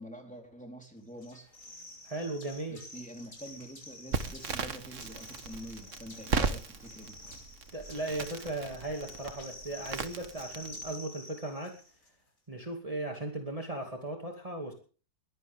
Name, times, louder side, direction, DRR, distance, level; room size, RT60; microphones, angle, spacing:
voice 1, 0.0-1.6 2.7-7.3, equal, 5° left, 2 dB, 4.0 m, -46 dB
sound 1, 1.2-12.1, left 2 dB, 60° left, 6.4 m, -49 dB
voice 2, 2.0-2.8 6.4-6.5 7.7-11.8 12.5-14.7, right 2 dB, 20° right, 2 dB, 2.5 m, -37 dB
Crackle, 4.1-10.9, right 5 dB, 55° right, 1.7 m, -37 dB
22.5 x 16.0 x 3.6 m, 0.39 s
omnidirectional pair, 1.6 m